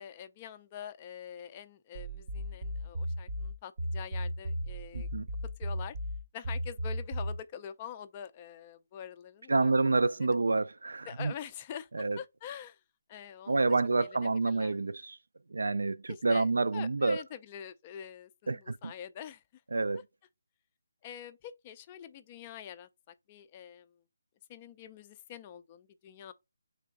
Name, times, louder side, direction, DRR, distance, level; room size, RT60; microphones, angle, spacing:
voice 1, 0.0-5.1 5.6-5.9 6.3-9.7 10.1-10.4 11.1-12.8 13.1-13.6 14.0-14.8 16.1-19.4 21.0-23.9 24.5-26.3, left 9 dB, 20° left, 0.3 m, -46 dB
sound 1, 1.9-7.4, equal, 40° right, 0.7 m, -35 dB
voice 2, 4.9-5.3 9.5-11.3 11.9-12.2 13.5-15.2 15.5-17.2 18.5-18.9 19.7-20.0, right 3 dB, 85° right, 0.4 m, -28 dB
3.7 x 3.3 x 3.6 m
hypercardioid pair, 170°, 0 cm